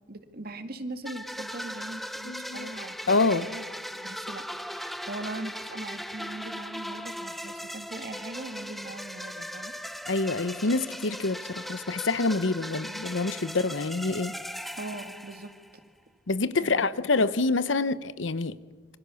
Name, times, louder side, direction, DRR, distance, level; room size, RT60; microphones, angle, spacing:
voice 1, 0.1-3.0 3.3-3.7 3.9-9.7 14.8-15.5 16.6-17.1, right 2 dB, 55° right, 2.1 m, -40 dB
sound 1, 1.0-15.8, equal, ahead, 0.9 m, -38 dB
voice 2, 2.2-2.7 3.1-3.5 10.1-14.3 16.3-18.6, left 3 dB, 85° left, 1.0 m, -26 dB
27.0 x 24.5 x 7.1 m
head